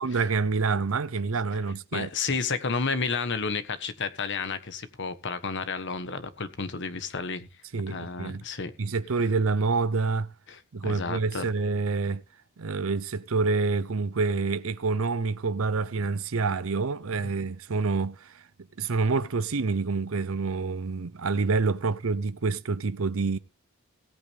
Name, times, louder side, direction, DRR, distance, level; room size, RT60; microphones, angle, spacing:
voice 1, 0.0-2.1 7.7-8.4 8.8-10.3 10.7-12.2 12.6-18.4 18.8-23.4, right 4 dB, 70° right, 0.7 m, -27 dB
voice 2, 1.9-7.5 7.9-8.7 10.5-11.4, left 4 dB, 60° left, 1.3 m, -31 dB
17.0 x 8.6 x 3.5 m
head